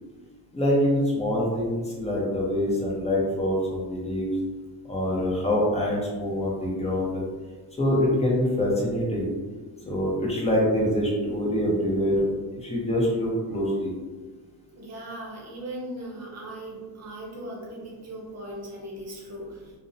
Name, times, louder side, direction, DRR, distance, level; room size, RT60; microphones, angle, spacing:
voice 1, 0.5-4.3 4.9-7.2 7.8-9.3 9.9-12.3 12.6-13.9, left 1 dB, 15° left, -4 dB, 0.6 m, -25 dB
voice 2, 14.7-19.7, right 1 dB, 40° right, -2 dB, 0.7 m, -38 dB
2.5 x 2.0 x 2.6 m, 1.3 s
cardioid pair, 130°, 41 cm